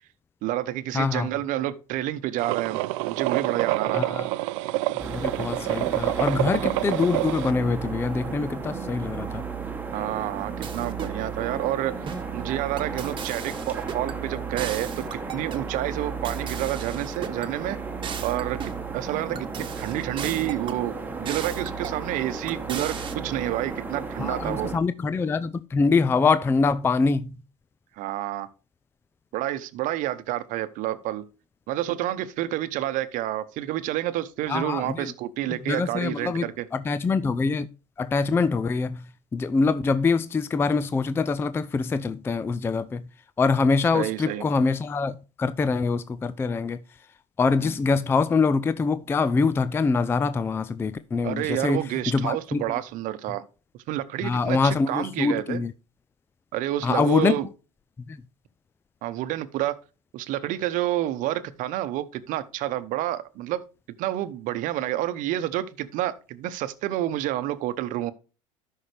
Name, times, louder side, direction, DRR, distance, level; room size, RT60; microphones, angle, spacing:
voice 1, 0.4-4.0 9.9-12.1 12.3-15.0 15.3-17.8 18.2-19.5 19.8-23.0 23.2-24.7 28.0-28.5 29.3-31.2 31.7-36.6 43.9-44.4 47.6-47.7 51.2-53.4 53.9-55.6 56.5-57.5 59.0-59.7 60.1-63.6 64.0-68.1, right 14 dB, 55° right, 0.9 m, -29 dB
voice 2, 0.9-1.3 3.9-4.3 5.0-9.4 24.2-27.4 34.5-35.1 35.7-37.7 38.0-39.0 39.3-43.0 43.4-46.8 47.4-52.6 54.2-55.7 56.8-57.4 58.1-58.2, left 4 dB, 15° left, 0.4 m, -24 dB
sound 1, 2.4-7.5, right 19 dB, 75° right, 0.5 m, -27 dB
sound 2, 5.0-24.8, right 5 dB, 10° right, 1.3 m, -34 dB
sound 3, 10.6-11.2 12.1-12.3 12.8-14.2 14.6-15.7 16.2-17.5 18.0-18.9 19.4-20.8 21.3-22.0 22.5-23.1, right 7 dB, 30° right, 1.2 m, -37 dB
12.5 x 5.7 x 3.3 m
supercardioid pair, 110°, 16 cm